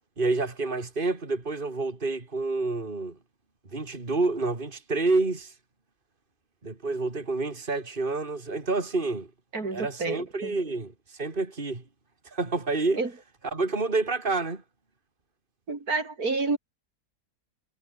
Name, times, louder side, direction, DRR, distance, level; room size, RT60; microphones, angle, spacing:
voice 1, 0.2-3.2 3.7-5.5 6.6-9.3 9.7-10.9 11.2-11.8 12.3-13.0 13.5-14.6, right 3 dB, 35° right, 3.3 m, -28 dB
voice 2, 9.5-10.6 13.0-13.1 15.7-16.6, right 3 dB, 75° right, 4.0 m, -29 dB
omnidirectional pair, 1.6 m